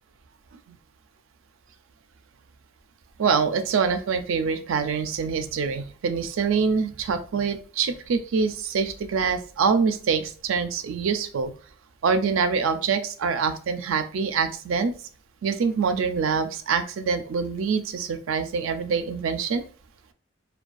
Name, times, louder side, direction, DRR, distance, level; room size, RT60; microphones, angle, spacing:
voice 1, 3.2-11.5 12.0-14.9 15.4-19.7, right 5 dB, 80° right, 8 dB, 0.4 m, -25 dB
2.3 x 2.2 x 2.5 m, 0.42 s
head